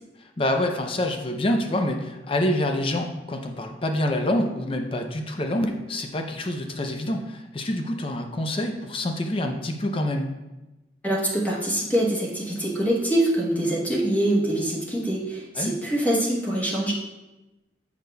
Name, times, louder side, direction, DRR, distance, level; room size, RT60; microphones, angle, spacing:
voice 1, 0.4-10.3 15.6-15.7, left 1 dB, 30° left, 4 dB, 0.5 m, -26 dB
voice 2, 11.0-16.9, right 1 dB, 10° left, -4 dB, 1.0 m, -24 dB
7.2 x 6.4 x 2.2 m, 1.0 s
head